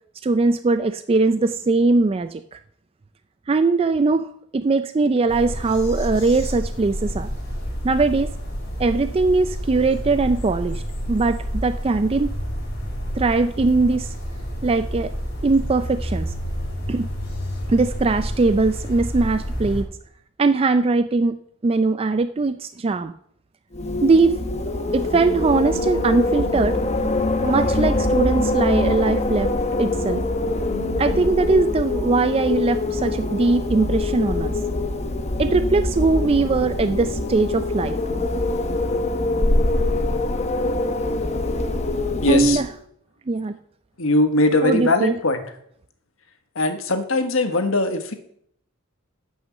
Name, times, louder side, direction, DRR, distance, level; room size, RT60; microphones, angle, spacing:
voice 1, 0.2-2.6 3.5-4.3 4.5-7.3 7.8-8.3 8.8-10.8 11.1-12.3 13.2-14.1 14.6-15.1 15.4-16.3 16.9-17.1 17.7-19.9 20.4-23.1 24.0-24.4 24.9-26.8 27.4-29.5 29.8-30.2 31.0-34.6 35.4-38.0 42.3-42.7 43.3-43.6 44.6-45.1, right 3 dB, 30° right, 10 dB, 0.4 m, -20 dB
sound 1, 5.3-19.8, equal, 55° left, 4.5 m, -29 dB
Wind, 23.7-42.7, left 2 dB, 35° left, 0.9 m, -24 dB
voice 2, 42.2-42.6 44.0-45.4 46.5-48.1, left 2 dB, 75° left, 7 dB, 1.4 m, -20 dB
11.0 x 6.3 x 7.2 m, 0.68 s
head